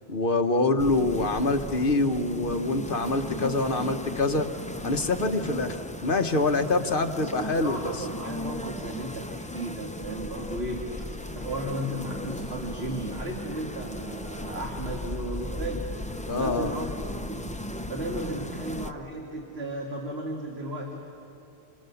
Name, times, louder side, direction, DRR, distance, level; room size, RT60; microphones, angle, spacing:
voice 1, 0.1-4.5 4.8-5.8 6.0-8.0 16.3-16.7, left 2 dB, 45° left, 6 dB, 1.3 m, -25 dB
sound 1, 0.8-18.9, left 1 dB, 10° left, 0.5 m, -36 dB
voice 2, 7.4-11.1 11.3-15.9 16.4-16.9 17.3-17.5 17.9-21.0, right 1 dB, 55° right, 0 dB, 2.4 m, -35 dB
27.5 x 27.0 x 7.1 m, 2.6 s
omnidirectional pair, 1.3 m